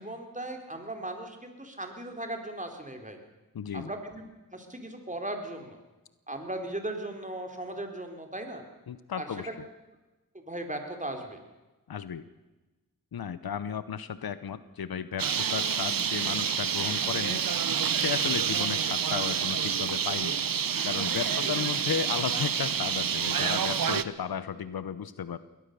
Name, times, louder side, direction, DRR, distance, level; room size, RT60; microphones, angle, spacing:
voice 1, 0.0-3.2 3.7-4.2 4.5-5.8 6.3-8.6 9.1-9.5 10.5-11.4 21.3-21.7, right 1 dB, 20° right, 4 dB, 4.1 m, -37 dB
voice 2, 3.5-3.9 8.9-9.6 11.9-12.2 13.1-20.4 20.8-25.4, left 8 dB, 90° left, 14 dB, 0.9 m, -34 dB
Bird, 15.2-24.0, right 7 dB, 70° right, 0.9 m, -28 dB
22.0 x 18.0 x 6.8 m, 1.1 s
cardioid pair, 55°, 35 cm